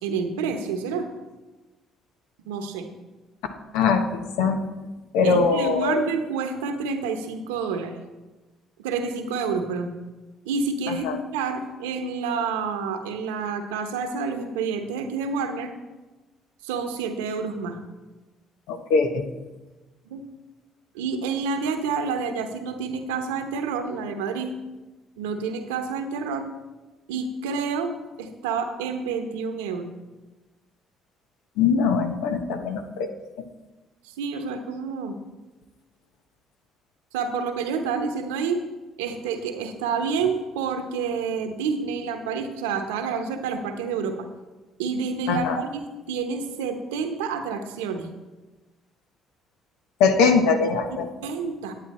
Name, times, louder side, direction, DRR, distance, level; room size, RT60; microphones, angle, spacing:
voice 1, 0.0-1.1 2.5-2.9 5.2-8.0 8.8-9.9 10.4-15.7 16.6-17.8 20.1-20.2 20.9-24.5 25.2-26.4 27.1-27.9 28.2-29.9 34.2-35.2 37.1-38.6 39.0-44.2 44.8-48.1 50.9-51.7, right 5 dB, 90° right, 6 dB, 1.0 m, -28 dB
voice 2, 3.7-4.0 4.4-4.6 5.1-6.1 10.9-11.1 18.7-19.2 31.6-33.1 45.3-45.6 50.0-51.1, left 5 dB, 80° left, 7 dB, 1.0 m, -21 dB
10.0 x 9.0 x 4.3 m, 1.2 s
supercardioid pair, 65°, 0 cm